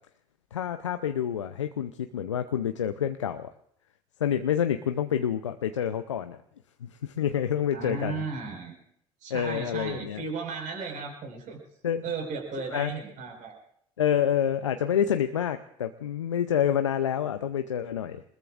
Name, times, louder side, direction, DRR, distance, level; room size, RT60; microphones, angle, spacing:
voice 1, 0.5-3.5 4.2-6.4 6.8-8.2 9.3-10.2 11.8-12.0 12.7-12.9 14.0-18.2, left 9 dB, 90° left, 8 dB, 0.6 m, -28 dB
voice 2, 7.7-8.8 9.2-11.6 12.0-13.6, right 4 dB, 60° right, 2 dB, 5.2 m, -35 dB
27.0 x 20.5 x 2.5 m, 0.69 s
hypercardioid pair, 60°, 15 cm